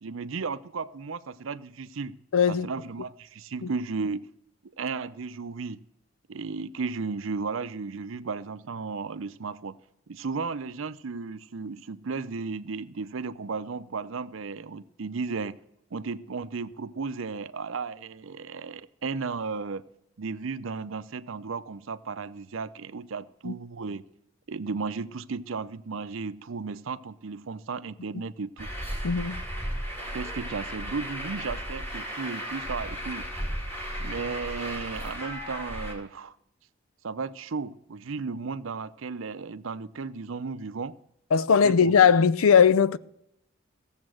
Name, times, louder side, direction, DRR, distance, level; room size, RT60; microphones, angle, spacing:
voice 1, 0.0-2.2 2.5-4.2 4.8-5.8 6.3-9.8 10.1-15.6 15.9-19.8 20.2-24.0 24.5-28.7 30.1-33.3 34.0-36.3 37.0-40.9 41.6-41.9, right 4 dB, 75° right, 0.6 m, -34 dB
voice 2, 2.3-2.7 3.6-3.7 23.4-23.5 29.0-29.4 41.3-43.0, left 6 dB, 85° left, 0.5 m, -19 dB
Truck, 28.6-35.9, equal, 10° left, 2.5 m, -35 dB
16.0 x 7.3 x 6.3 m
head